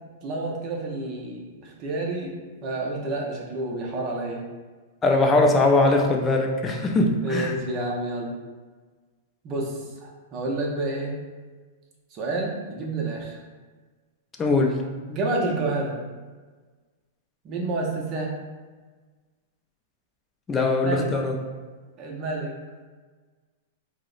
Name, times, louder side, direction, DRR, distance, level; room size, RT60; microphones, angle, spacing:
voice 1, 0.2-2.3 2.6-4.4 7.2-8.4 9.4-11.2 12.1-13.4 15.1-16.0 17.4-18.3 20.8-21.1 22.0-22.6, right 2 dB, 35° right, -1 dB, 0.6 m, -29 dB
voice 2, 5.0-7.5 14.4-14.8 20.5-21.3, left 2 dB, 15° left, 2 dB, 0.4 m, -21 dB
4.6 x 2.0 x 2.5 m, 1.4 s
hypercardioid pair, 145°, 0 cm